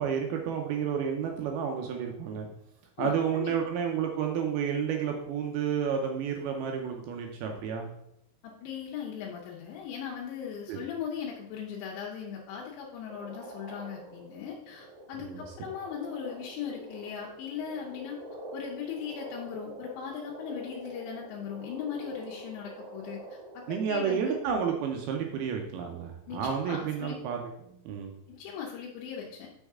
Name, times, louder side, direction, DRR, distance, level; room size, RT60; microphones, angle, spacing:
voice 1, 0.0-2.5 3.0-7.9 10.7-10.8 15.2-15.4 23.7-27.4 27.9-28.2, right 7 dB, 80° right, 2 dB, 2.4 m, -31 dB
voice 2, 3.0-3.5 8.4-18.2 18.5-23.2 23.5-24.4 26.3-27.2 28.3-29.5, left 7 dB, 90° left, -3 dB, 3.2 m, -38 dB
sound 1, 13.1-24.7, right 1 dB, 40° right, 1.6 m, -46 dB
6.7 x 6.3 x 3.6 m, 0.77 s
omnidirectional pair, 5.0 m